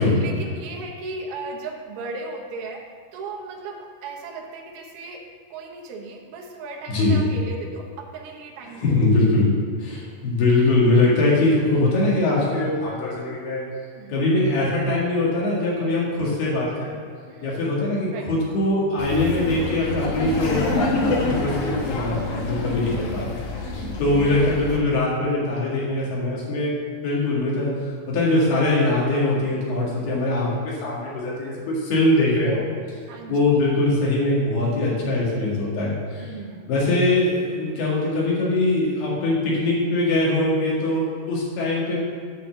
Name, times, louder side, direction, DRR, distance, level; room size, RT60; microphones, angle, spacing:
voice 1, 0.0-2.8 3.1-5.2 5.5-8.9 13.9-14.2 17.3-18.3 23.5-24.1 33.1-33.6 36.2-36.7, right 3 dB, 85° right, 0 dB, 1.2 m, -36 dB
voice 2, 6.9-7.2 8.7-9.5 9.8-13.6 14.1-17.0 17.4-21.6 21.9-26.7 27.0-27.7 28.1-32.7 33.3-36.3 36.7-42.0, left 2 dB, 90° left, -5 dB, 4.1 m, -22 dB
Laughter, 19.0-24.8, left 2 dB, 65° left, 1.6 m, -27 dB
9.1 x 4.5 x 7.1 m, 2.1 s
omnidirectional pair, 4.3 m